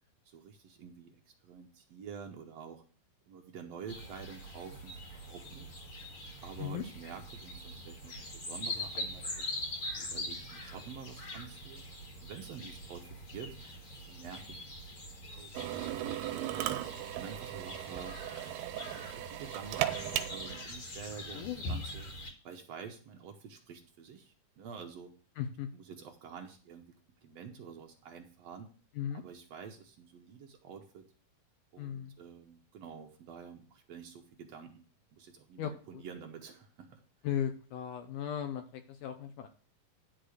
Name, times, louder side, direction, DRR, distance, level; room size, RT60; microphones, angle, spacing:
voice 1, 0.2-1.2 1.4-2.8 3.3-5.7 6.4-9.5 10.0-11.8 12.2-13.6 14.1-14.6 15.2-16.6 17.1-18.2 18.6-22.1 22.4-25.1 25.7-26.9 27.2-28.7 29.1-31.1 31.7-34.8 35.1-37.0, right 6 dB, 70° right, 3 dB, 1.6 m, -48 dB
sound 1, 3.9-22.3, left 1 dB, 45° left, 2.4 m, -43 dB
Drill, 15.6-20.6, right 13 dB, 85° right, 2.6 m, -37 dB
voice 2, 21.3-21.7 25.4-25.7 29.0-29.2 31.8-32.1 35.6-36.0 37.2-39.5, left 9 dB, 75° left, 7 dB, 2.1 m, -37 dB
11.5 x 4.0 x 6.4 m, 0.39 s
omnidirectional pair, 4.2 m